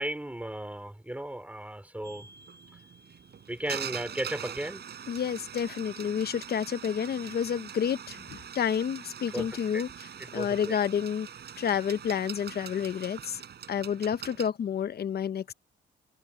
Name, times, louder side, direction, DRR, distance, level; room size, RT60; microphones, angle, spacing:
voice 1, 0.0-2.3 3.5-4.8 9.3-9.5 9.7-9.8 10.3-10.8, right 1 dB, 5° right, 4.4 m, -35 dB
sound 1, 2.0-14.5, right 8 dB, 55° right, 5.8 m, -43 dB
voice 2, 5.1-11.3 11.6-13.4 13.7-15.5, left 8 dB, 50° left, 1.0 m, -30 dB
cardioid pair, 90°, 20 cm